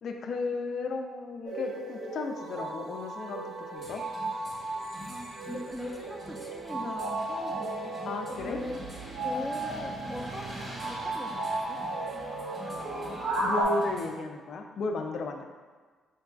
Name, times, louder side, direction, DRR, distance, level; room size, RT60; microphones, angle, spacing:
voice 1, 0.0-4.0 8.0-8.6 13.4-15.5, left 3 dB, 60° left, 4 dB, 0.4 m, -34 dB
sound 1, 1.5-13.6, right 2 dB, 80° right, 0.8 m, -35 dB
sound 2, 3.7-14.1, right 1 dB, 30° right, 0.8 m, -45 dB
voice 2, 5.0-8.8 9.2-11.8 12.1-12.4, equal, ahead, 0 dB, 0.5 m, -41 dB
4.5 x 2.4 x 2.3 m, 1.4 s
cardioid pair, 90°, 0 cm